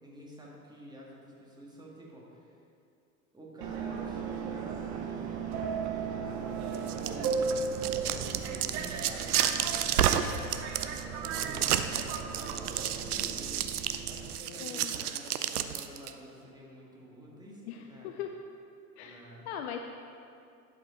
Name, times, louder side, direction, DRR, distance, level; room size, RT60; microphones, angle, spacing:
voice 1, 0.0-2.6 3.3-13.7 14.1-18.2 19.0-19.6, right 1 dB, 10° right, -4 dB, 1.8 m, -49 dB
Subway metro underground, 3.6-14.4, right 5 dB, 40° right, 0.8 m, -36 dB
sound 1, 6.7-16.1, right 10 dB, 75° right, 0.6 m, -31 dB
voice 2, 14.6-14.9 17.6-18.3 19.0-19.2 19.5-19.8, left 9 dB, 50° left, 5 dB, 0.5 m, -39 dB
11.5 x 5.1 x 4.4 m, 2.5 s
figure-of-eight pair, 90°, 46 cm